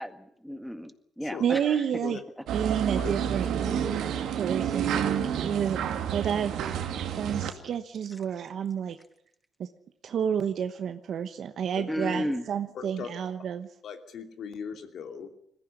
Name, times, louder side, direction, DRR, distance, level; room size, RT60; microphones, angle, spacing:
voice 1, 0.0-1.8 11.9-12.4, equal, ahead, 9 dB, 1.9 m, -33 dB
voice 2, 1.4-2.2 2.5-3.5 4.3-5.8 6.1-9.0 9.6-9.7 10.0-13.7, right 8 dB, 65° right, 8 dB, 1.1 m, -30 dB
sound 1, 2.5-7.5, right 8 dB, 80° right, 2.2 m, -29 dB
voice 3, 12.7-13.1 13.8-15.3, left 7 dB, 65° left, 6 dB, 2.8 m, -38 dB
21.0 x 15.0 x 10.0 m, 0.73 s
cardioid pair, 90°, 0 cm